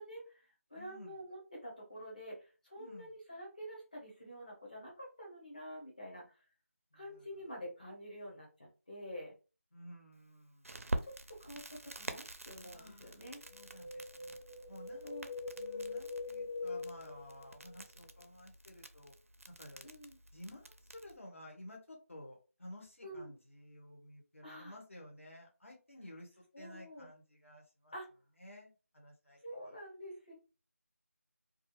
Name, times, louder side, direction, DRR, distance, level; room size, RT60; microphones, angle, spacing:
voice 1, 0.0-6.4 6.9-9.3 11.0-13.4 15.0-15.3 19.8-20.2 23.0-23.3 24.4-24.8 26.5-27.1 27.9-28.1 29.4-30.3, equal, 35° left, -2 dB, 1.0 m, -48 dB
voice 2, 0.7-1.1 2.8-3.1 6.9-7.3 9.7-10.8 12.7-14.4 14.7-15.2 15.5-19.1 19.6-19.9 20.3-27.9 28.4-29.4, left 1 dB, 55° left, -1 dB, 1.1 m, -53 dB
Crackle, 10.6-21.2, right 2 dB, 65° right, 0.4 m, -47 dB
Wind, 13.4-17.8 18.0-18.1, left 3 dB, 85° left, 1.3 m, -43 dB
2.4 x 2.2 x 3.1 m, 0.33 s
figure-of-eight pair, 180°, 8 cm